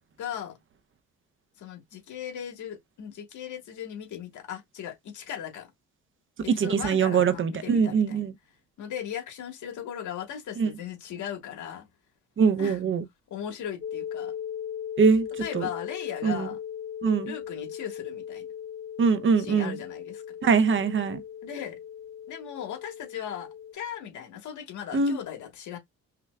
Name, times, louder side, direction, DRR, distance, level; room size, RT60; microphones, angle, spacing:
voice 1, 0.2-0.6 1.6-5.7 6.4-8.3 8.8-11.9 12.6-12.8 13.3-14.3 15.4-16.6 17.2-18.5 19.4-20.4 21.4-21.8 22.3-25.8, left 9 dB, 80° left, 1.5 m, -38 dB
voice 2, 6.5-8.3 10.6-10.7 12.4-13.0 15.0-15.3 15.5-15.7 16.2-16.5 17.0-17.3 19.0-19.8 20.4-21.2 24.9-25.2, right 5 dB, 40° right, 0.6 m, -23 dB
sound 1, 13.8-23.7, left 9 dB, 35° left, 0.5 m, -38 dB
5.6 x 2.2 x 2.2 m
cardioid pair, 90°, 30 cm